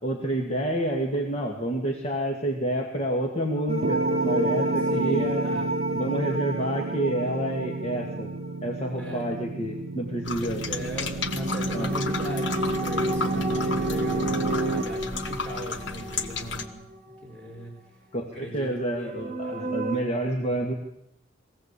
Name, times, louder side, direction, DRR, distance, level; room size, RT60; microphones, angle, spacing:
voice 1, 0.0-5.4 5.9-8.3 8.6-10.6 11.7-11.9 18.1-20.7, right 1 dB, 35° left, 1 dB, 2.3 m, -28 dB
sound 1, 3.7-8.9 11.1-17.3 17.6-17.7 19.0-20.0, equal, 35° right, 2.6 m, -31 dB
Piano, 3.8-14.8, right 4 dB, 80° right, 0.8 m, -31 dB
voice 2, 4.9-5.7 9.0-9.2 10.4-16.8 17.2-17.7 18.3-18.7 19.0-19.1 19.4-19.8, right 1 dB, 5° left, -2 dB, 5.0 m, -38 dB
sound 2, 10.2-16.6, left 4 dB, 80° left, 1.6 m, -34 dB
22.0 x 16.5 x 8.4 m, 0.80 s
head